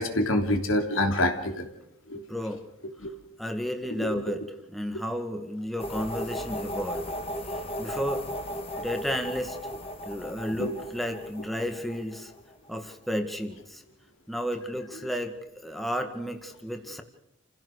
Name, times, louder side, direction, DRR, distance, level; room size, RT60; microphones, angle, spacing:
voice 1, 0.0-1.7 2.1-2.2 3.0-3.1 4.0-4.2 10.6-10.7, left 1 dB, 75° left, 5 dB, 3.1 m, -26 dB
voice 2, 2.1-2.6 3.0-3.1 3.4-7.1 7.5-8.3 8.8-9.6 10.0-12.3 12.7-13.8 14.3-17.0, equal, ahead, 5 dB, 1.8 m, -33 dB
sound 1, 5.8-12.7, equal, 30° left, 2.4 m, -36 dB
28.5 x 16.0 x 6.6 m, 0.86 s
head